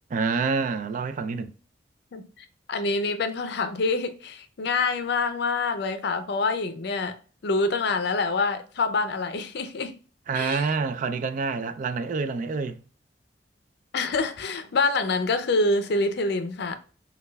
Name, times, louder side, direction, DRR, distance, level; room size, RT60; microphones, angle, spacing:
voice 1, 0.1-1.5 10.3-12.8, right 4 dB, 45° right, 0.3 m, -27 dB
voice 2, 2.1-7.2 7.4-9.9 10.3-10.7 13.9-16.8, left 3 dB, 65° left, 0.5 m, -26 dB
5.3 x 2.3 x 2.2 m
head